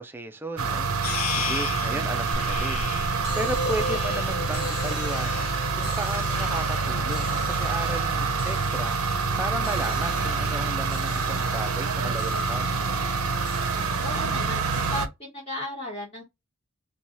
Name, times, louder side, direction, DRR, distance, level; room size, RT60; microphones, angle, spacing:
voice 1, 0.0-5.5 5.8-12.7, right 1 dB, 10° right, 0.3 m, -35 dB
sound 1, 0.6-15.1, right 4 dB, 90° right, 0.6 m, -27 dB
sound 2, 1.0-15.0, left 9 dB, 85° left, 0.4 m, -39 dB
sound 3, 2.3-7.2, equal, 50° left, 1.3 m, -35 dB
voice 2, 13.7-16.2, left 1 dB, 30° left, 1.0 m, -35 dB
2.7 x 2.3 x 2.9 m
head